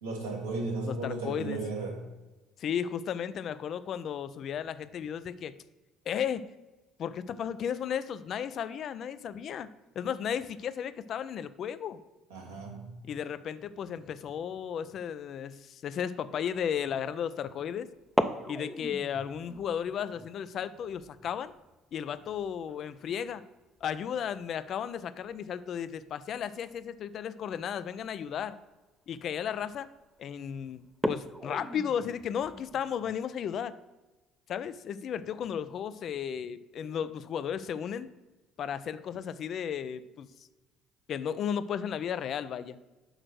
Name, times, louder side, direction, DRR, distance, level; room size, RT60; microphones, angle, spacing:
voice 1, 0.0-2.0 12.3-12.9, right 3 dB, 80° right, -4 dB, 2.4 m, -35 dB
voice 2, 0.9-1.6 2.6-5.5 6.1-6.4 7.0-9.7 10.0-12.0 13.0-17.9 18.5-21.5 21.9-23.4 23.8-28.6 29.1-29.9 30.2-33.7 34.5-38.1 38.6-40.3 41.1-42.8, left 8 dB, 50° left, 14 dB, 0.4 m, -34 dB
sound 1, 16.5-16.8 18.0-24.5 24.7-24.8 25.2-25.6 26.6-26.7 27.4-27.5 28.0-28.1 28.5-28.8 29.4-29.8 30.2-30.3 30.9-33.2, equal, ahead, 0.6 m, -38 dB
6.4 x 4.8 x 6.2 m, 1.1 s
figure-of-eight pair, 55°, 0 cm